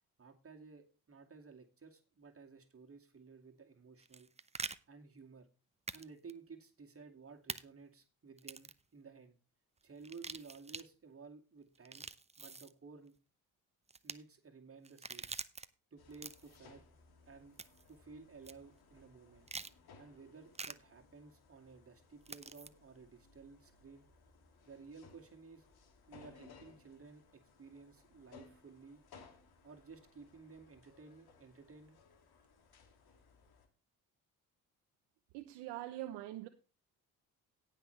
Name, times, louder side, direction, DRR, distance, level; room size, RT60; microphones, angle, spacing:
voice 1, 0.2-4.3 4.9-5.5 5.9-9.4 9.8-12.1 12.4-13.1 14.0-15.3 15.9-16.8 17.3-17.6 17.9-19.5 20.0-24.1 24.6-25.7 26.1-29.0 29.6-32.0, right 4 dB, 35° right, 2.3 m, -55 dB
sound 1, 4.0-4.8 5.9-6.0 6.3-6.4 7.5-7.6 8.4-8.8 10.0-10.8 11.7-12.7 13.9-14.1 14.8-15.7 16.1-16.6 17.6-17.9 18.4-18.5 19.5-19.7 20.5-20.7 22.2-22.7, right 4 dB, 15° right, 0.7 m, -45 dB
sound 2, 16.0-33.7, left 4 dB, 60° left, 2.6 m, -63 dB
voice 2, 35.3-36.5, right 15 dB, 80° right, 0.9 m, -43 dB
17.5 x 6.2 x 3.3 m
hypercardioid pair, 55°, 41 cm